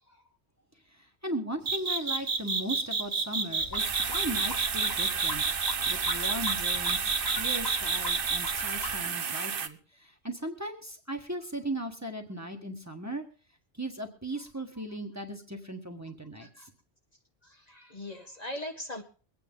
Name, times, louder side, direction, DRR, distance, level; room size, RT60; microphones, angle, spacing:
voice 1, 0.9-13.2 13.7-16.7, right 1 dB, 15° right, 3 dB, 1.4 m, -38 dB
sound 1, 1.7-8.5, right 4 dB, 85° right, 1.7 m, -29 dB
sound 2, 3.6-9.0, left 2 dB, 20° left, 1.1 m, -41 dB
sound 3, 3.8-9.7, right 6 dB, 60° right, 1.0 m, -33 dB
voice 2, 17.4-19.0, left 1 dB, 40° left, 4 dB, 1.1 m, -41 dB
23.0 x 8.9 x 3.8 m, 0.36 s
omnidirectional pair, 1.1 m